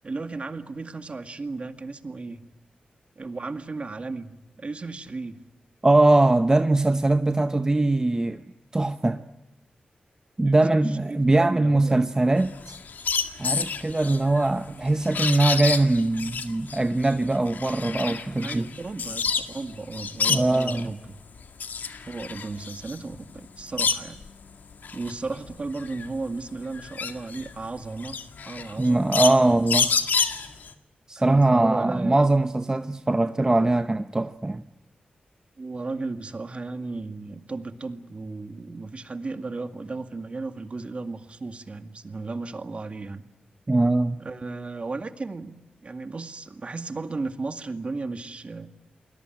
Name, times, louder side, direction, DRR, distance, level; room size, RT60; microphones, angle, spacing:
voice 1, 0.0-2.4 3.2-5.4 10.5-12.1 18.0-21.2 22.1-24.2 24.9-28.2 28.4-29.7 31.2-32.3 35.6-43.2 44.2-48.7, right 3 dB, 40° right, 2.0 m, -35 dB
voice 2, 5.8-8.4 8.7-9.2 10.4-12.8 13.4-18.7 20.3-20.9 28.8-29.9 31.1-34.6 43.7-44.2, right 2 dB, 20° right, 0.9 m, -21 dB
sound 1, 12.4-19.6 19.9-20.9 21.4-24.3 24.7-30.7, left 6 dB, 75° left, 1.9 m, -29 dB
29.0 x 21.0 x 9.3 m
cardioid pair, 80°, 3 cm